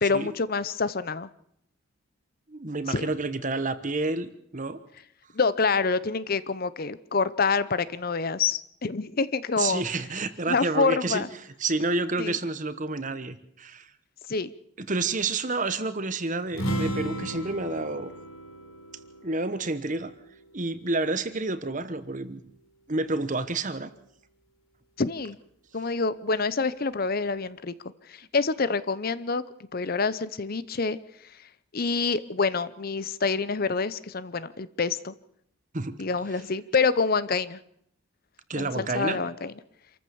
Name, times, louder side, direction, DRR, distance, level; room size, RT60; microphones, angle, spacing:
voice 1, 0.0-1.3 2.9-3.1 5.3-9.8 10.5-11.3 12.2-12.4 14.3-14.5 25.0-25.4 25.7-27.7 28.1-29.4 29.7-31.0 31.7-35.1 36.0-37.6 38.6-39.5, left 4 dB, 45° left, 16 dB, 0.7 m, -27 dB
voice 2, 2.5-4.8 9.6-11.3 11.6-13.9 14.8-18.1 19.2-20.1 20.5-22.4 22.9-23.9 35.7-35.9 38.5-39.2, right 3 dB, 40° right, 12 dB, 1.2 m, -29 dB
sound 1, 16.5-20.2, right 1 dB, 90° left, 3.8 m, -34 dB
27.0 x 14.0 x 7.1 m, 0.72 s
head